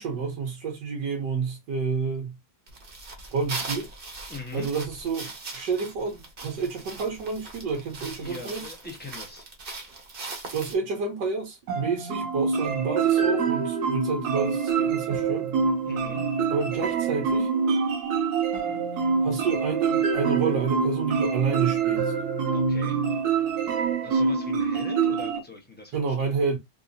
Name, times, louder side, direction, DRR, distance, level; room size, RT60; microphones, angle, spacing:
voice 1, 0.0-2.4 3.3-3.9 4.5-8.7 10.5-15.5 16.5-17.5 19.2-22.1 25.9-26.6, right 5 dB, 90° right, 1.5 m, -29 dB
sound 1, 2.7-10.8, right 3 dB, 40° right, 1.0 m, -39 dB
voice 2, 4.3-4.7 8.2-9.5 15.8-16.2 22.5-23.0 24.0-26.4, left 3 dB, 10° left, 0.7 m, -41 dB
sound 2, 11.7-25.4, right 5 dB, 70° right, 1.3 m, -25 dB
3.7 x 2.7 x 2.6 m
omnidirectional pair, 1.8 m